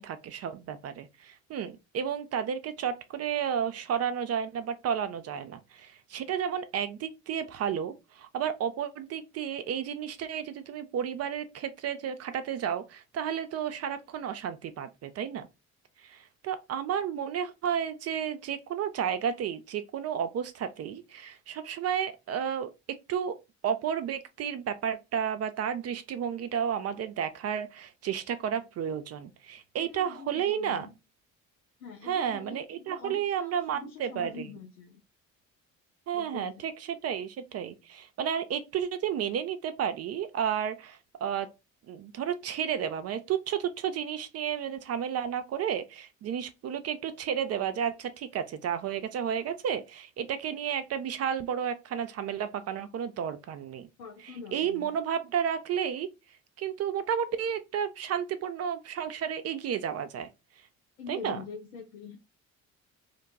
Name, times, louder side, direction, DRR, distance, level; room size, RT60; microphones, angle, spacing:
voice 1, 0.0-15.5 16.0-22.7 23.1-23.4 23.6-30.9 32.0-34.5 36.1-41.5 41.9-53.9 54.2-56.1 56.6-60.3 61.1-61.4, right 8 dB, 40° right, 0.4 m, -32 dB
voice 2, 29.8-30.9 31.8-35.0 36.1-36.7 54.0-54.9 61.0-62.2, left 6 dB, 80° left, 0.6 m, -44 dB
2.5 x 2.2 x 3.9 m
figure-of-eight pair, 50°, 41 cm